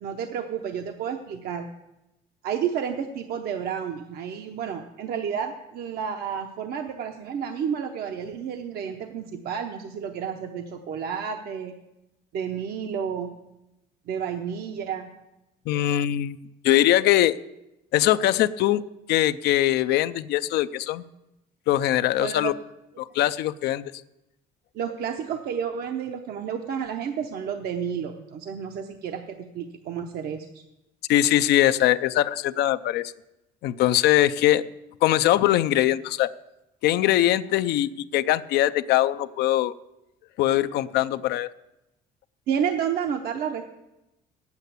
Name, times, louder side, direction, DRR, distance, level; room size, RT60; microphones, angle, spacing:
voice 1, 0.0-1.7 2.4-11.7 12.3-13.3 14.1-15.1 22.2-22.5 24.7-30.6 42.5-43.6, right 7 dB, 70° right, 5 dB, 0.8 m, -31 dB
voice 2, 15.7-16.4 16.6-17.4 17.9-18.8 19.1-21.0 21.7-22.5 23.0-23.9 31.1-33.1 33.6-34.6 35.0-36.3 36.8-39.7 40.4-41.5, left 13 dB, 75° left, 12 dB, 0.5 m, -22 dB
9.0 x 8.3 x 8.2 m, 0.93 s
cardioid pair, 110°, 17 cm